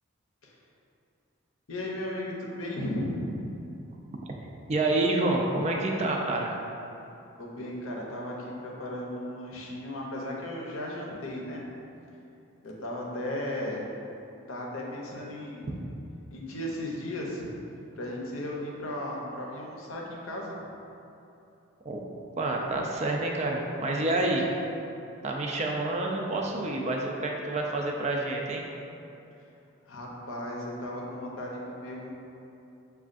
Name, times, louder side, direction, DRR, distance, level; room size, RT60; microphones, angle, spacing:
voice 1, 1.7-3.5 7.4-11.7 12.6-13.9 14.5-15.8 16.3-17.5 18.0-20.6 29.8-32.1, left 1 dB, 75° left, -2 dB, 0.7 m, -35 dB
voice 2, 4.7-6.5 21.9-22.0 22.4-24.5 25.2-28.6, right 2 dB, 30° right, 0 dB, 0.3 m, -28 dB
6.3 x 2.3 x 2.5 m, 2.8 s
head